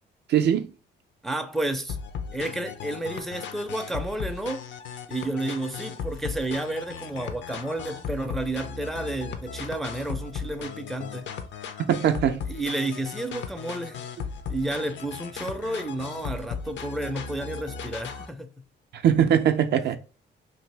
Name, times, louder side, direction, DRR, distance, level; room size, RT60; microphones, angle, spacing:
voice 1, 0.3-0.7 11.8-12.4 18.9-20.0, right 9 dB, 60° right, 0.4 m, -21 dB
voice 2, 1.2-2.0 2.3-4.7 5.1-11.3 12.5-14.1 14.5-18.7, right 1 dB, ahead, 0.4 m, -31 dB
sound 1, 1.9-18.3, left 6 dB, 65° left, 0.5 m, -37 dB
2.7 x 2.6 x 3.2 m
cardioid pair, 90°, 20 cm